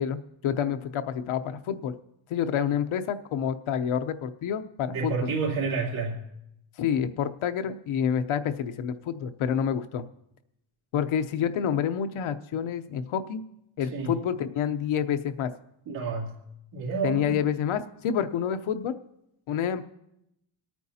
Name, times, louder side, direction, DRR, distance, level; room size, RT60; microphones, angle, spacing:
voice 1, 0.0-1.9 2.3-5.3 6.8-10.0 10.9-13.4 13.8-15.5 17.0-19.0 19.5-19.9, left 8 dB, 75° left, 10 dB, 0.8 m, -28 dB
voice 2, 4.9-6.2 13.9-14.1 15.9-16.3 16.7-17.4, right 4 dB, 85° right, -3 dB, 2.8 m, -29 dB
27.0 x 9.2 x 2.8 m, 0.83 s
cardioid pair, 140°, 49 cm